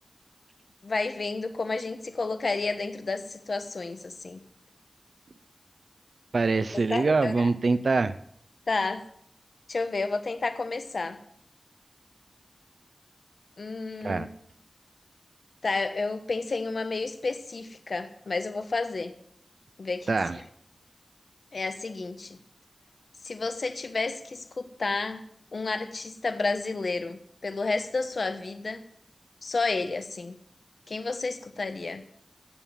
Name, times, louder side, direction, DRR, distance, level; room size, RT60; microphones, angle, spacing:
voice 1, 0.8-4.4 6.9-7.5 8.7-9.1 9.7-11.2 13.6-14.3 15.6-19.2 19.8-20.1 21.5-22.4 23.2-25.2 25.5-28.8 29.4-30.4 30.9-32.0, left 3 dB, 75° left, 9 dB, 1.1 m, -31 dB
voice 2, 6.3-8.1 14.0-14.3 20.1-20.4, right 3 dB, 80° right, 12 dB, 0.5 m, -24 dB
17.0 x 7.2 x 7.3 m, 0.67 s
wide cardioid pair, 60°, 0 cm